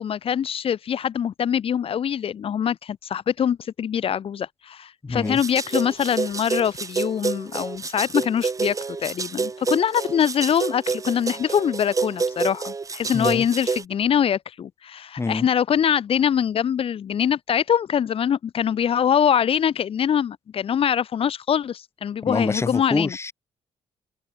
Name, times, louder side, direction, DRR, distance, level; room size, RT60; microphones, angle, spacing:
voice 1, 0.0-8.7 9.0-23.2, left 8 dB, 55° left, 3.4 m, -23 dB
voice 2, 5.0-5.4 13.1-13.5 15.2-15.5 22.2-23.3, left 3 dB, 25° left, 4.5 m, -26 dB
sound 1, 5.2-13.8, right 4 dB, 30° right, 2.4 m, -28 dB
open air
cardioid pair, 95°, 12 cm